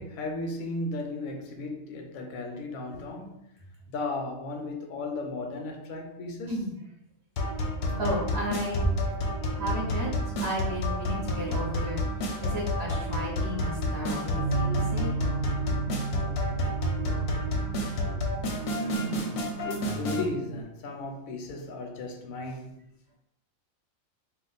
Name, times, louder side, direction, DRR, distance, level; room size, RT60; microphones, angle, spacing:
voice 1, 0.0-3.4 3.9-6.5 18.0-18.1 18.8-22.8, left 2 dB, 85° left, 1.0 m, -35 dB
sound 1, 7.4-20.3, left 1 dB, 60° left, 0.7 m, -30 dB
voice 2, 8.0-8.9 9.6-10.1 10.4-12.0 12.4-15.2, equal, 30° right, 0.6 m, -32 dB
Bass guitar, 14.4-20.6, right 4 dB, 70° right, 0.8 m, -34 dB
2.4 x 2.3 x 3.9 m
omnidirectional pair, 1.4 m